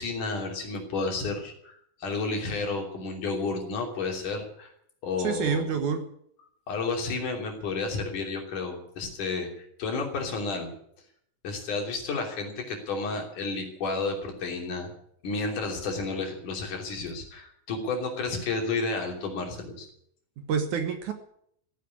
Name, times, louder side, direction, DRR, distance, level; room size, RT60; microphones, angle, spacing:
voice 1, 0.0-4.7 5.0-5.6 6.7-10.7 11.4-14.9 15.2-19.9, left 3 dB, 60° left, 2 dB, 4.5 m, -31 dB
voice 2, 5.2-6.0 20.4-21.1, right 6 dB, 60° right, 7 dB, 2.5 m, -28 dB
16.0 x 10.0 x 8.5 m, 0.67 s
omnidirectional pair, 4.2 m